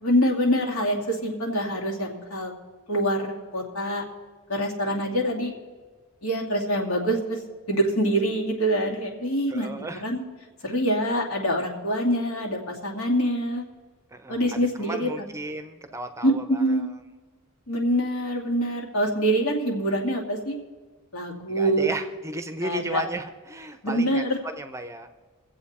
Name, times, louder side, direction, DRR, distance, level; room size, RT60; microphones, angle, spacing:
voice 1, 0.0-2.5 2.9-4.0 4.5-5.5 6.2-7.4 7.7-10.2 10.6-13.6 14.3-15.1 16.2-16.9 17.7-20.6 21.1-21.9 22.6-23.0 23.8-24.4, equal, 70° left, -1 dB, 2.6 m, -25 dB
voice 2, 4.9-5.3 9.5-10.0 10.7-10.8 14.1-16.9 21.5-25.1, right 2 dB, 15° right, 9 dB, 0.7 m, -35 dB
24.0 x 7.9 x 4.3 m, 1.4 s
head